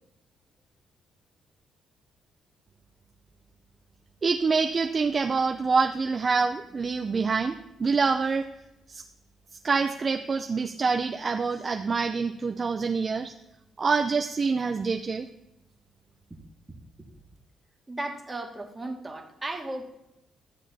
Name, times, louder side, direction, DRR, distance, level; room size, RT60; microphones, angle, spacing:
voice 1, 4.2-8.5 8.9-9.0 9.6-13.3 13.8-15.3, right 4 dB, 35° right, 5 dB, 0.5 m, -26 dB
voice 2, 17.9-19.8, right 2 dB, 15° right, 2 dB, 1.8 m, -35 dB
13.0 x 7.3 x 4.2 m, 0.89 s
cardioid pair, 90°, 0 cm